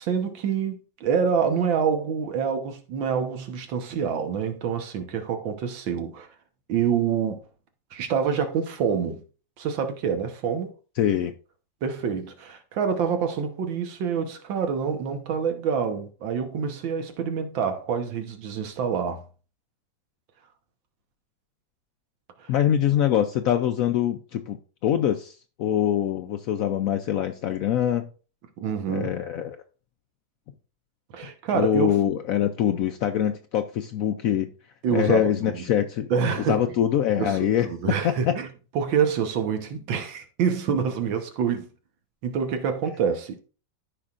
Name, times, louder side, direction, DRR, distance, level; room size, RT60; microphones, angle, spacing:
voice 1, 0.0-6.3 6.7-7.4 7.9-9.2 9.6-10.7 11.8-19.2 22.4-22.5 28.6-29.2 31.1-31.9 34.8-35.6 36.1-36.7 37.2-38.5 38.8-41.7 42.2-43.4, right 7 dB, 85° right, 1.8 m, -26 dB
voice 2, 11.0-11.3 22.5-28.1 28.9-29.6 31.5-34.5 34.9-36.1 36.5-37.7 38.0-38.3, left 10 dB, 85° left, 0.7 m, -24 dB
13.5 x 5.1 x 2.5 m
omnidirectional pair, 2.0 m